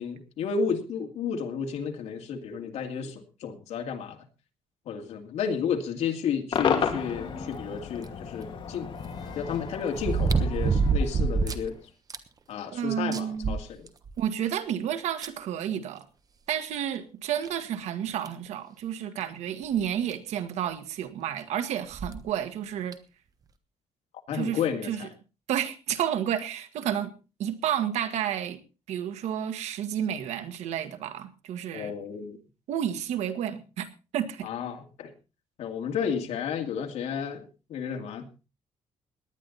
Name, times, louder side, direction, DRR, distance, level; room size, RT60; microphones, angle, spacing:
voice 1, 0.0-4.2 4.9-8.9 9.3-11.8 12.5-13.9 24.3-25.1 31.7-32.4 34.4-35.1 35.6-38.3, left 6 dB, 75° left, 5 dB, 2.4 m, -32 dB
Cheering / Crowd / Fireworks, 6.5-11.8, left 6 dB, 50° left, 2.4 m, -33 dB
sound 1, 8.0-8.1 10.0-11.7 12.1-12.2 12.7-12.8 13.1-14.2 15.2-15.3 16.8-16.9 17.4-17.5 18.2-18.5 19.8-19.9 20.1-20.2 21.9-22.2 22.9-23.0, right 4 dB, 35° right, 1.3 m, -26 dB
voice 2, 12.7-13.6 14.2-16.1 16.5-23.0 24.3-25.1 25.5-27.1 27.4-28.6 28.9-31.9 32.7-33.9 34.1-34.5, right 10 dB, 85° right, 9 dB, 1.7 m, -31 dB
18.5 x 10.5 x 4.1 m, 0.32 s
cardioid pair, 145°, 11 cm